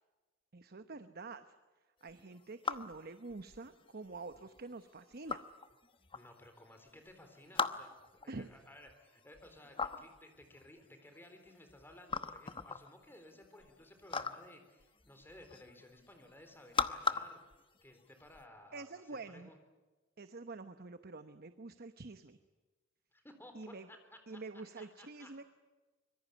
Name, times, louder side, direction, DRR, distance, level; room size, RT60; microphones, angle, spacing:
voice 1, 0.5-1.4 2.0-5.4 8.3-8.5 18.7-19.5 20.2-22.4 23.5-23.9 24.3-25.4, right 3 dB, 50° right, 10 dB, 1.0 m, -47 dB
sound 1, 2.1-18.4, left 5 dB, 25° left, 0.9 m, -41 dB
voice 2, 6.1-7.9 8.2-17.4 17.8-19.6 23.1-24.4 24.8-25.4, left 1 dB, 10° left, 5 dB, 3.9 m, -57 dB
25.0 x 23.0 x 8.4 m, 1.2 s
head